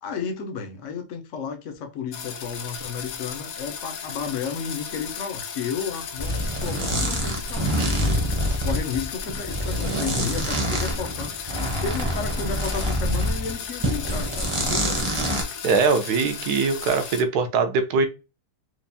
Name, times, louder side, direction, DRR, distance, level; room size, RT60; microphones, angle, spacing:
voice 1, 0.0-7.7 8.6-15.1, left 6 dB, 60° left, 1.0 m, -32 dB
sound 1, 2.1-17.2, left 7 dB, 75° left, 1.2 m, -35 dB
Zipper sound, 6.2-13.5 13.8-15.4, equal, 25° right, 0.7 m, -26 dB
voice 2, 15.6-18.1, right 4 dB, 75° right, 1.2 m, -22 dB
4.5 x 2.5 x 2.6 m
omnidirectional pair, 1.8 m